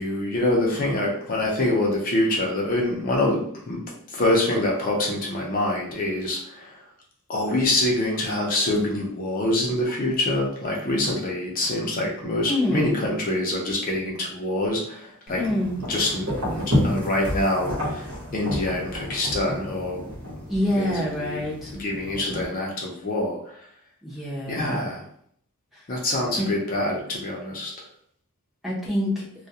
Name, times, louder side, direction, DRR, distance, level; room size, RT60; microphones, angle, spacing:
voice 1, 0.0-3.8 4.1-6.8 7.3-15.4 15.9-20.0 20.7-21.4 21.7-23.6 24.5-25.0 25.9-27.7, left 1 dB, 40° left, -2 dB, 0.5 m, -25 dB
voice 2, 12.4-12.9 15.4-15.8 20.5-21.7 22.3-22.4 24.0-24.9 25.7-25.9 26.3-26.5 28.6-29.2, left 1 dB, ahead, -6 dB, 0.6 m, -26 dB
sound 1, 15.3-22.4, left 1 dB, 70° right, 1.0 m, -30 dB
2.3 x 2.1 x 2.7 m, 0.64 s
head